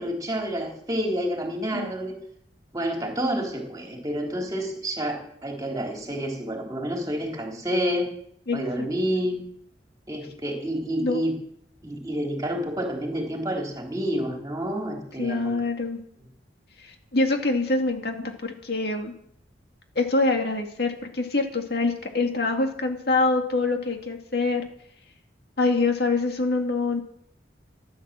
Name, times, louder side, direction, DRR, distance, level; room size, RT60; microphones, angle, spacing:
voice 1, 0.0-2.2 2.7-8.1 8.5-9.4 10.1-11.3 11.8-15.5, equal, 20° right, 1 dB, 3.6 m, -29 dB
voice 2, 8.5-8.9 11.0-11.2 15.2-16.0 16.8-19.1 20.0-24.6 25.6-27.0, left 3 dB, 60° left, 4 dB, 2.2 m, -25 dB
15.0 x 11.0 x 7.6 m, 0.67 s
head